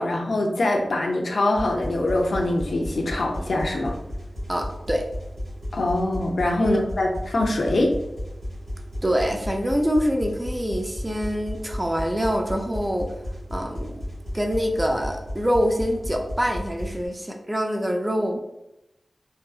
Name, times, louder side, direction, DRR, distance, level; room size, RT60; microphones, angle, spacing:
voice 1, 0.0-4.0 5.7-7.9, left 2 dB, 75° left, 1 dB, 0.4 m, -23 dB
sound 1, 1.6-17.1, equal, 75° right, 1.3 m, -34 dB
voice 2, 4.5-5.1 6.6-6.8 9.0-13.1 13.5-14.0 14.3-18.4, equal, 15° right, 3 dB, 0.3 m, -25 dB
2.7 x 2.5 x 2.3 m, 0.89 s
wide cardioid pair, 65°, 0 cm